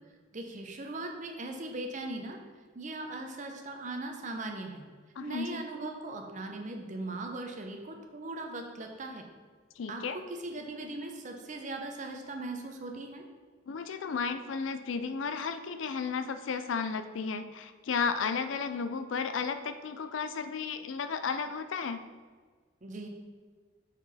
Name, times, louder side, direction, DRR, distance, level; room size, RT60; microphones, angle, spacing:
voice 1, 0.3-2.4 2.7-4.8 5.2-9.3 9.9-13.2 22.8-23.1, right 2 dB, 40° right, 3 dB, 0.8 m, -39 dB
voice 2, 5.2-5.6 9.8-10.2 13.7-22.0, left 5 dB, 85° left, 10 dB, 0.5 m, -33 dB
6.0 x 4.8 x 4.2 m, 1.5 s
head